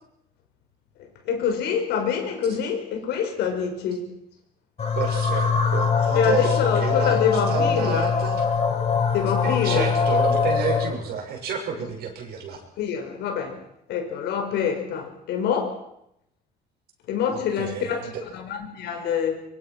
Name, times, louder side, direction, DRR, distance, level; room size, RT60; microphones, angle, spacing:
voice 1, 1.3-4.0 6.1-8.0 9.1-9.9 11.8-11.9 12.8-13.6 13.9-15.8 17.1-18.0 18.3-19.4, left 7 dB, 80° left, 5 dB, 5.4 m, -25 dB
sound 1, 4.8-11.0, left 6 dB, 35° left, 6.8 m, -23 dB
voice 2, 4.9-8.4 9.4-12.6 17.3-18.2, right 6 dB, 70° right, 2 dB, 6.9 m, -30 dB
23.5 x 23.5 x 6.1 m, 0.78 s
cardioid pair, 110°, 17 cm